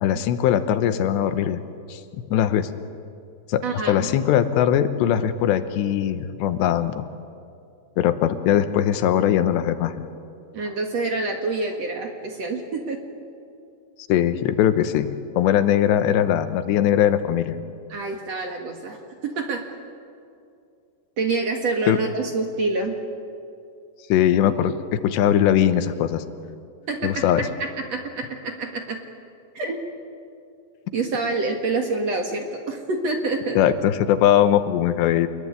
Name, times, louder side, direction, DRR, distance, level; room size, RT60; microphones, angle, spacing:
voice 1, 0.0-1.6 1.9-2.0 2.3-2.7 3.5-7.1 8.0-10.0 14.1-17.6 21.9-22.0 24.1-26.2 27.0-27.5 33.6-35.3, left 10 dB, 85° left, 10 dB, 3.3 m, -20 dB
voice 2, 3.6-4.1 10.5-13.0 17.9-19.7 21.2-23.0 26.9-29.0 29.5-29.8 30.9-33.6, right 3 dB, 50° right, 3 dB, 2.2 m, -27 dB
27.5 x 22.0 x 9.8 m, 2.5 s
omnidirectional pair, 4.9 m